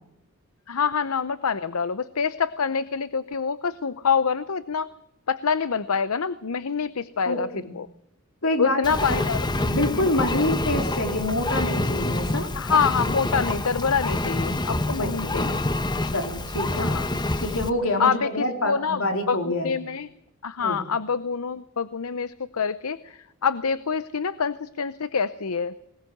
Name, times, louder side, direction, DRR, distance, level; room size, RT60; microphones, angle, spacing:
voice 1, 0.7-4.9 5.3-7.9 8.6-9.5 9.9-10.5 12.5-15.6 16.8-17.1 18.0-20.1 20.4-25.9, left 6 dB, 85° left, 15 dB, 0.7 m, -26 dB
voice 2, 7.3-7.8 8.4-9.2 9.7-12.5 15.0-15.4 16.1-16.9 17.4-19.8 20.6-20.8, left 1 dB, 70° left, 4 dB, 4.0 m, -27 dB
Engine, 8.8-17.7, left 2 dB, 20° left, 1.0 m, -27 dB
20.5 x 20.0 x 6.6 m, 0.80 s
head